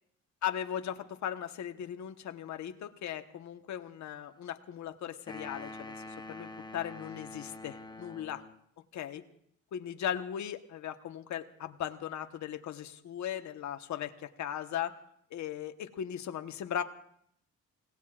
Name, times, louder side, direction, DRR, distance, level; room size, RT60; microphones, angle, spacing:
voice 1, 0.4-8.4 8.9-9.2 9.7-15.0 15.3-16.8, left 10 dB, 70° left, 7 dB, 1.2 m, -38 dB
sound 1, 5.3-8.6, left 2 dB, 15° left, 1.0 m, -45 dB
29.5 x 18.0 x 2.4 m, 0.70 s
cardioid pair, 90°, 30 cm